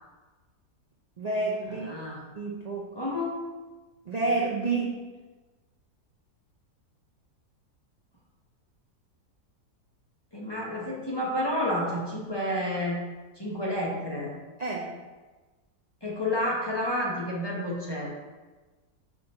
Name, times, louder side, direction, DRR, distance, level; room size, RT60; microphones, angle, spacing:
voice 1, 1.2-1.9 2.4-2.9 4.1-5.0 14.6-14.9, right 3 dB, 60° right, -4 dB, 0.4 m, -29 dB
voice 2, 1.7-2.2 2.9-3.4 10.3-13.0 13.4-14.3 16.0-18.1, left 1 dB, 15° left, -4 dB, 1.1 m, -30 dB
4.9 x 4.4 x 5.4 m, 1.3 s
omnidirectional pair, 1.7 m